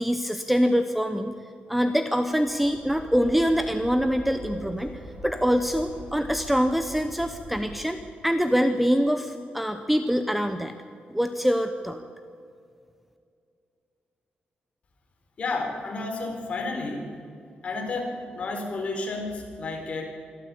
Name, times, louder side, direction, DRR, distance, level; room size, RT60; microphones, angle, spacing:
voice 1, 0.0-1.3 1.7-10.8 11.1-12.0, equal, 5° right, 8 dB, 0.8 m, -24 dB
sound 1, 2.3-8.2, right 1 dB, 55° right, 7.8 m, -42 dB
voice 2, 15.4-17.1 17.6-20.0, left 3 dB, 40° left, 1 dB, 4.5 m, -31 dB
25.0 x 13.5 x 8.7 m, 2.4 s
wide cardioid pair, 165°, 3 cm